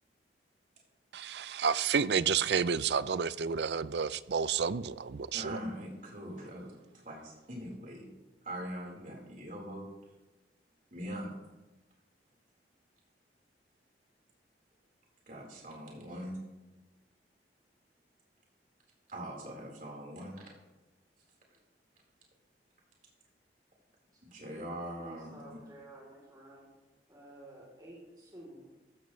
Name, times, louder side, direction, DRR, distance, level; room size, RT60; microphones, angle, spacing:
voice 1, 1.1-5.6, right 6 dB, 70° right, 0.5 m, -30 dB
voice 2, 5.3-8.1 8.4-9.9 10.9-11.3 15.3-16.4 19.1-20.4 24.3-25.3, equal, 50° right, 4.3 m, -42 dB
voice 3, 25.0-26.7 27.1-28.9, right 1 dB, 20° right, 3.4 m, -52 dB
16.0 x 13.5 x 3.2 m
head